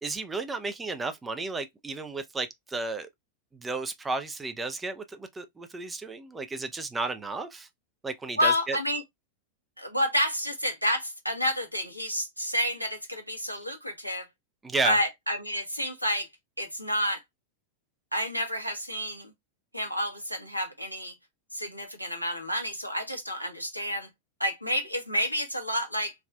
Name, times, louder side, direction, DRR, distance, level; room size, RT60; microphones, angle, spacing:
voice 1, 0.0-3.1 3.5-7.7 8.0-8.8 14.6-15.0, right 3 dB, 15° right, 0.4 m, -33 dB
voice 2, 8.4-9.0 9.8-14.3 14.8-16.3 16.6-17.2 18.1-19.3 19.7-21.1 21.5-24.1 24.4-26.1, equal, 90° right, 0.8 m, -29 dB
3.4 x 2.3 x 2.2 m
figure-of-eight pair, 90°, 0 cm